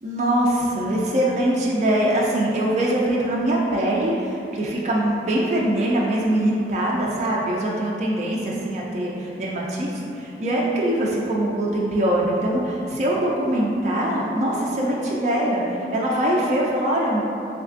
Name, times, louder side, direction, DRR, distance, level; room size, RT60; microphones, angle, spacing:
voice 1, 0.0-15.6 15.9-17.2, right 1 dB, 40° right, -4 dB, 0.3 m, -23 dB
3.3 x 3.2 x 2.5 m, 2.7 s
head